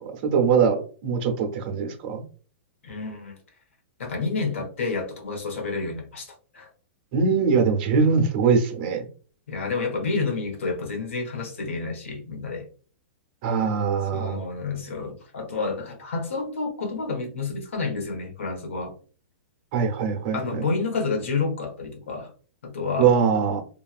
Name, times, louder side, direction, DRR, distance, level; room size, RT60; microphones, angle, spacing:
voice 1, 0.0-2.2 7.1-9.1 13.4-14.4 19.7-20.7 23.0-23.6, right 6 dB, 45° right, 3 dB, 0.8 m, -22 dB
voice 2, 2.8-3.4 4.0-6.7 9.5-12.7 14.1-18.9 20.3-22.3 22.6-23.1, left 4 dB, 85° left, 3 dB, 1.0 m, -29 dB
3.0 x 2.4 x 2.4 m, 0.41 s
hypercardioid pair, 155°, 7 cm